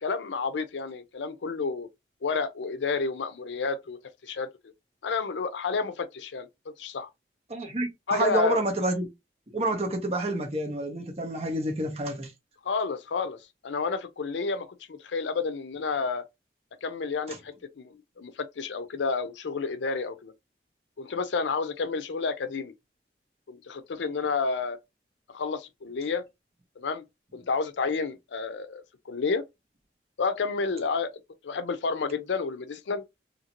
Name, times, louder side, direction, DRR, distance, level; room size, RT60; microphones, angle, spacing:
voice 1, 0.0-1.9 2.2-4.5 5.0-6.5 6.8-7.1 8.1-8.6 12.6-16.2 16.8-20.3 21.0-22.7 23.5-24.8 25.3-26.2 26.8-27.0 27.3-29.4 30.2-31.1 31.4-33.0, left 4 dB, 85° left, 0.5 m, -30 dB
voice 2, 7.5-9.1 9.5-12.3 17.3-17.4, right 1 dB, 35° right, 0.8 m, -28 dB
2.8 x 2.6 x 2.9 m
head